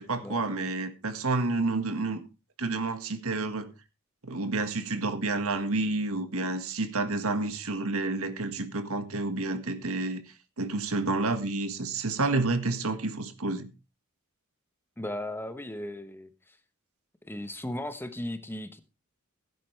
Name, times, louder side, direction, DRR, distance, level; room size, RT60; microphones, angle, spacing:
voice 1, 0.0-2.2 2.6-3.7 4.2-10.2 10.6-13.7, right 3 dB, 70° right, 1.6 m, -29 dB
voice 2, 15.0-16.6 17.2-18.8, left 1 dB, 10° left, 1.0 m, -36 dB
16.5 x 9.9 x 3.3 m
head